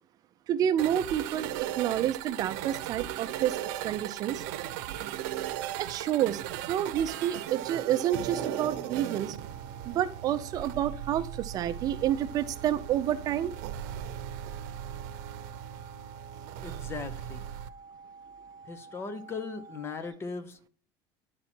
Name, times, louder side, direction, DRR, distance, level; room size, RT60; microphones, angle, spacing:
voice 1, 0.5-3.6 3.8-4.4 5.8-9.4 9.8-13.5, right 11 dB, 40° right, 11 dB, 0.5 m, -29 dB
sound 1, 0.8-17.7, right 12 dB, 90° right, 0.7 m, -38 dB
sound 2, 2.3-20.1, right 4 dB, 75° left, 3.2 m, -50 dB
sound 3, 8.3-10.8 11.1-11.2, right 9 dB, 65° right, 1.0 m, -41 dB
voice 2, 16.6-17.5 18.7-20.7, left 4 dB, 25° left, 11 dB, 0.9 m, -38 dB
10.5 x 4.2 x 4.4 m, 0.41 s
cardioid pair, 155°, 10 cm